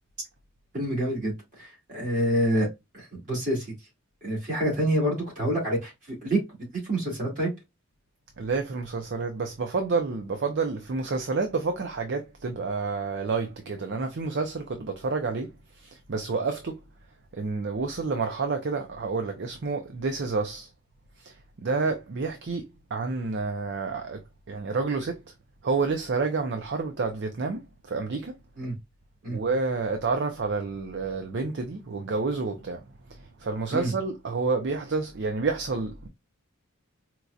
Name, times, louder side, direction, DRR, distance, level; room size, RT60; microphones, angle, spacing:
voice 1, 0.7-1.3 1.6-2.7 2.9-3.7 4.2-7.5 28.6-28.7 29.2-29.4 33.7-33.9, right 1 dB, 35° right, 2.3 m, -27 dB
voice 2, 8.4-15.5 15.8-16.8 17.3-20.7 21.2-21.3 21.6-22.7 22.9-24.2 24.5-25.2 25.6-28.3 29.3-32.8 33.4-36.1, right 4 dB, 55° right, 0.5 m, -29 dB
4.5 x 2.6 x 2.3 m
head